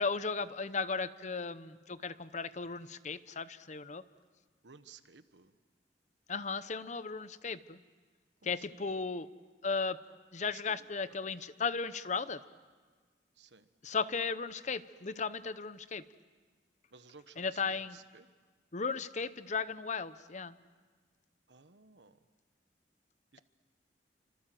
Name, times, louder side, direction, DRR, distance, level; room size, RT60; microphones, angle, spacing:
voice 1, 0.0-4.0 6.3-7.8 8.4-9.3 9.6-10.0 10.3-12.4 13.8-16.0 17.4-18.0 18.7-20.6, left 4 dB, 40° left, 14 dB, 0.8 m, -36 dB
voice 2, 4.6-5.6 8.4-8.7 10.4-10.9 13.3-13.7 16.9-18.3 21.5-22.2 23.3-23.4, right 5 dB, 80° right, 11 dB, 1.3 m, -57 dB
30.0 x 25.5 x 7.8 m, 1.4 s
head